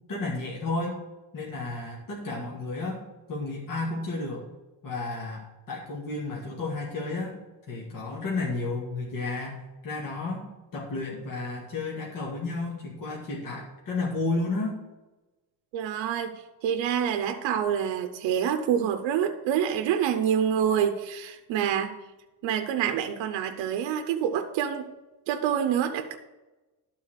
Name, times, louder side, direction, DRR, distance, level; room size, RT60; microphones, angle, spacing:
voice 1, 0.1-1.0 1.3-4.5 4.8-7.4 7.7-10.4 10.7-14.7, left 3 dB, 50° left, -3 dB, 2.2 m, -32 dB
voice 2, 15.7-16.3 16.6-21.9 22.4-24.9 25.3-26.2, right 9 dB, 85° right, 7 dB, 0.9 m, -27 dB
12.0 x 4.2 x 6.5 m, 1.1 s
cardioid pair, 135°, 44 cm